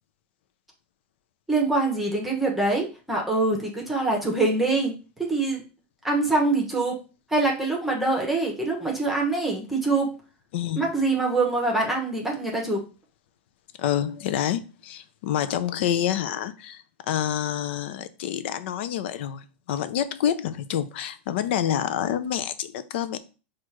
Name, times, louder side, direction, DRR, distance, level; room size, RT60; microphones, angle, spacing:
voice 1, 1.5-4.9 5.2-5.6 6.0-7.0 7.3-10.1 10.8-12.8, right 2 dB, 5° right, 1.0 m, -24 dB
voice 2, 10.5-10.9 13.8-23.2, left 10 dB, 70° left, 0.5 m, -28 dB
4.3 x 2.5 x 4.5 m
supercardioid pair, 130°, 6 cm